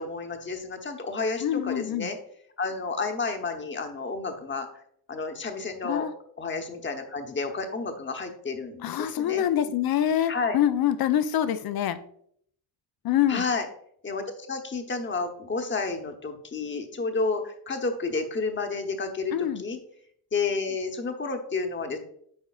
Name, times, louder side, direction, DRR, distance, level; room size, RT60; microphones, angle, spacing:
voice 1, 0.0-2.2 2.6-4.7 5.1-6.1 6.4-9.4 10.3-10.6 13.3-13.7 14.0-19.8 20.3-22.0, left 4 dB, 30° left, 5 dB, 1.0 m, -31 dB
voice 2, 1.4-2.1 5.8-6.1 8.8-12.0 13.0-13.4 19.3-19.6, left 10 dB, 60° left, 12 dB, 0.6 m, -25 dB
8.7 x 4.9 x 2.4 m, 0.66 s
cardioid pair, 105°, 41 cm